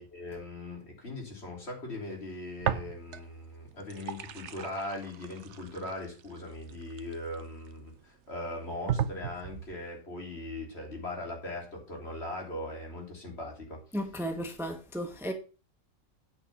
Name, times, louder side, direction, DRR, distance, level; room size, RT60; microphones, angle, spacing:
voice 1, 0.0-13.8, left 1 dB, 55° left, 3.5 m, -40 dB
sound 1, 2.6-3.4 3.7-7.7 8.3-8.4 8.9-9.8, right 9 dB, 65° right, 1.0 m, -35 dB
voice 2, 13.9-15.3, equal, ahead, 1.1 m, -34 dB
9.5 x 5.8 x 5.9 m
omnidirectional pair, 1.3 m